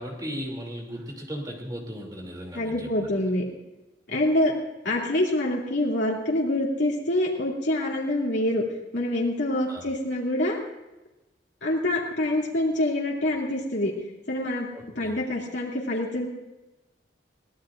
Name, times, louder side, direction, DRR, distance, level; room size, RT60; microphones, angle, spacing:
voice 1, 0.0-3.1 9.7-9.8 14.7-15.1, equal, 20° right, 0 dB, 2.8 m, -36 dB
voice 2, 2.5-3.4 4.1-4.5 4.8-8.6 8.9-10.6 11.6-13.9 14.3-14.7 14.9-16.3, left 1 dB, 85° left, -4 dB, 2.6 m, -26 dB
23.0 x 17.5 x 2.5 m, 1.0 s
head